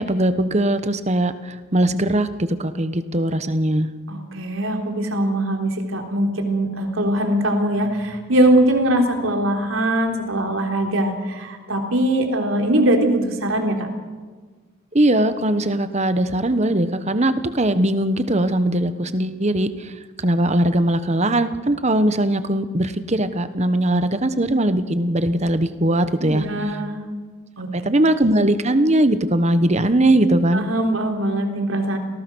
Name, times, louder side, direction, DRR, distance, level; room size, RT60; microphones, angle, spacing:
voice 1, 0.0-3.9 14.9-19.9 20.2-26.7 27.7-30.6, right 1 dB, 35° right, 11 dB, 1.2 m, -20 dB
voice 2, 4.1-13.9 26.2-27.0 27.6-28.0 30.5-32.0, right 1 dB, 80° right, 3 dB, 3.7 m, -21 dB
28.0 x 18.0 x 6.3 m, 1.4 s
head